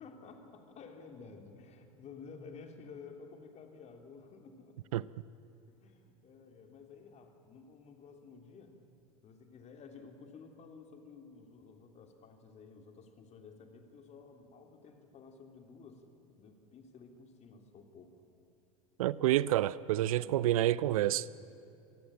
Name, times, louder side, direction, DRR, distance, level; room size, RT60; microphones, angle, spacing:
voice 1, 0.0-4.8 5.7-8.7 9.2-16.0 16.3-18.2 20.2-21.2, left 5 dB, 35° left, 3.3 m, -53 dB
voice 2, 19.0-21.2, right 14 dB, 65° right, 0.6 m, -28 dB
25.5 x 19.0 x 8.9 m
hypercardioid pair, 85°, 19 cm